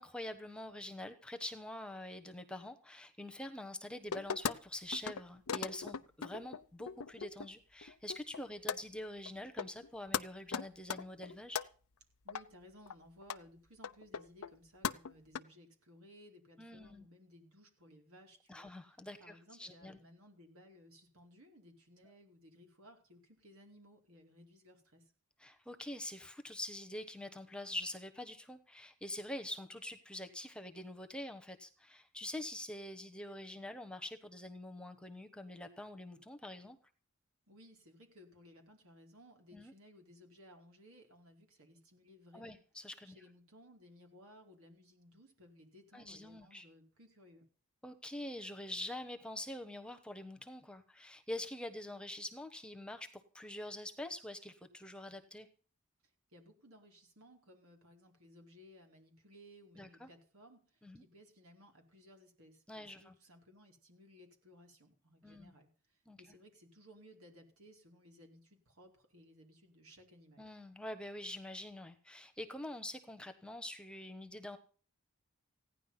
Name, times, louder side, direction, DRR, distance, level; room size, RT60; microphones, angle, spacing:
voice 1, 0.0-11.6 16.6-17.1 18.5-20.0 25.4-36.8 39.5-39.7 42.3-43.2 45.9-46.7 47.8-55.5 59.8-60.1 60.8-61.0 62.7-63.2 65.2-65.5 66.1-66.4 70.4-74.6, left 1 dB, 5° left, 6 dB, 1.1 m, -45 dB
sound 1, 4.1-4.5 4.9-5.2 5.5-7.5 7.8-8.4 8.7-8.8 9.3-9.4 9.6-9.9 10.1-10.2 10.5-11.7 12.3-12.4 12.9-13.0 13.2-13.4 13.8-14.6 14.8-15.4, left 6 dB, 80° left, 0.8 m, -38 dB
voice 2, 12.2-18.7 19.2-25.0 37.5-42.6 43.0-47.4 56.3-65.7 66.2-70.4, equal, 70° right, 2 dB, 4.7 m, -60 dB
16.5 x 10.5 x 5.7 m, 0.40 s
head